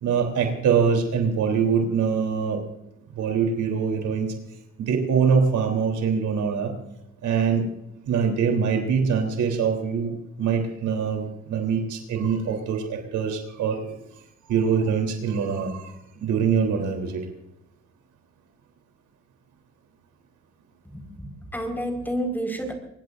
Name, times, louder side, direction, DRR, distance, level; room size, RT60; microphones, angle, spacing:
voice 1, 0.0-2.6 3.1-4.3 4.8-6.7 7.2-7.7 8.1-13.8 14.5-17.3, right 6 dB, 80° right, 3 dB, 3.6 m, -24 dB
voice 2, 20.9-22.8, right 1 dB, 5° left, 3 dB, 4.8 m, -30 dB
25.0 x 20.5 x 2.6 m, 0.88 s
cardioid pair, 90°, 30 cm